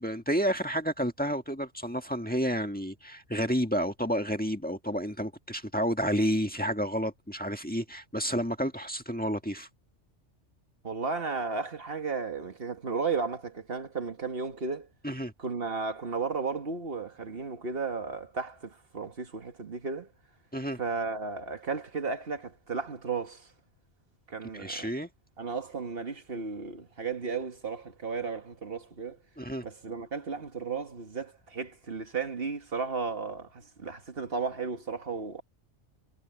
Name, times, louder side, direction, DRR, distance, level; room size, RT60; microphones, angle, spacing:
voice 1, 0.0-9.7 15.0-15.3 20.5-20.8 24.5-25.1 29.4-29.6, equal, 5° left, 1.6 m, -30 dB
voice 2, 10.8-14.9 15.4-20.1 20.8-23.5 24.3-24.9 25.4-29.2 29.6-35.4, right 4 dB, 50° right, 1.9 m, -34 dB
omnidirectional pair, 1.3 m